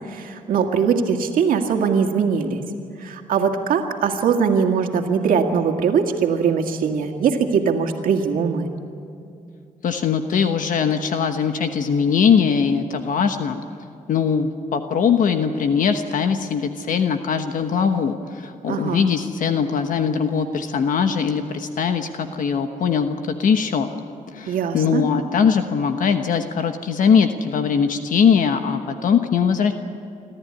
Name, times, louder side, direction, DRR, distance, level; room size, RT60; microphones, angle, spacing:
voice 1, 0.1-2.6 3.0-8.7 18.7-19.1 24.5-25.0, right 6 dB, 90° right, 4 dB, 2.0 m, -21 dB
voice 2, 9.8-13.6 14.1-23.9 24.3-29.7, left 6 dB, 75° left, 7 dB, 1.2 m, -21 dB
26.0 x 13.5 x 9.7 m, 2.5 s
cardioid pair, 90°, 14 cm